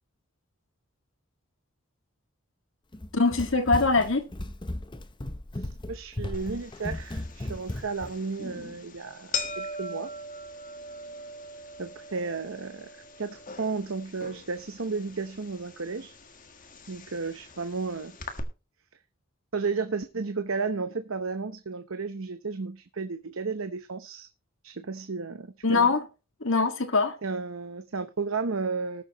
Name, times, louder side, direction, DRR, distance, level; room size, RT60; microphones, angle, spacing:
Run, 2.9-8.1, left 1 dB, 20° left, 0.8 m, -36 dB
voice 1, 3.1-4.3 25.6-26.1 26.4-27.2, left 3 dB, 60° left, 1.8 m, -23 dB
voice 2, 5.5-10.1 11.8-12.9 13.2-16.1 16.9-18.2 19.5-24.3 24.6-25.9 27.2-29.0, right 4 dB, 65° right, 0.9 m, -33 dB
sound 1, 6.3-18.4, left 3 dB, 40° left, 1.6 m, -41 dB
19.5 x 7.1 x 3.0 m
head